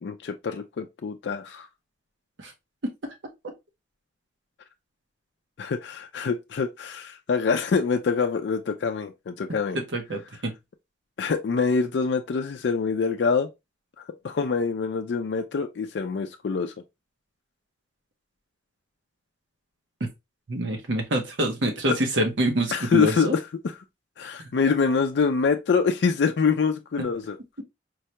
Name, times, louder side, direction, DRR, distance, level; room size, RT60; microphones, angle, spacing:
voice 1, 0.0-1.7 5.6-9.8 11.2-13.5 14.2-16.7 21.9-22.0 22.7-23.7 24.2-27.4, left 5 dB, 65° left, 0.4 m, -25 dB
voice 2, 9.9-10.5 20.5-23.4, right 1 dB, 80° right, 0.8 m, -26 dB
4.6 x 2.2 x 2.8 m
head